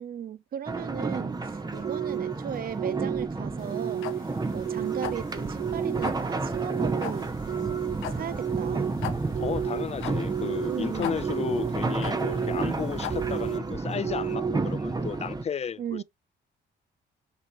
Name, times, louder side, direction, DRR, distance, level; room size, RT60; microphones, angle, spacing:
voice 1, 0.0-4.1 4.5-7.4 8.1-8.9 10.6-11.2 15.8-16.0, right 9 dB, 50° right, 0.7 m, -36 dB
sound 1, 0.7-15.4, right 3 dB, 20° right, 0.9 m, -31 dB
sound 2, 1.8-2.3 2.8-3.3 3.7-4.2 4.7-5.1 5.6-6.1 6.5-7.0 7.5-8.0 8.4-8.9 9.4-9.8 10.3-10.8 11.2-11.7 12.2-12.7 13.1-13.6 14.0-14.5, right 10 dB, 75° right, 0.8 m, -31 dB
sound 3, 3.6-13.6, left 11 dB, 85° left, 0.9 m, -40 dB
voice 2, 9.4-16.0, left 7 dB, 35° left, 0.4 m, -33 dB
7.0 x 3.0 x 4.7 m
cardioid pair, 90°, 20 cm